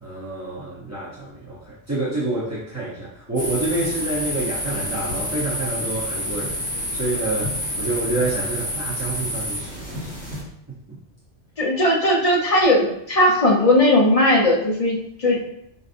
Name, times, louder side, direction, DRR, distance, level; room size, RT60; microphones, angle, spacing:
voice 1, 0.0-10.1 10.9-11.0, right 2 dB, 20° right, -8 dB, 0.5 m, -28 dB
sound 1, 3.4-10.4, equal, 5° left, 1.2 m, -28 dB
voice 2, 11.6-15.4, left 1 dB, 40° left, -2 dB, 0.6 m, -18 dB
5.1 x 2.5 x 2.5 m, 0.76 s
omnidirectional pair, 1.2 m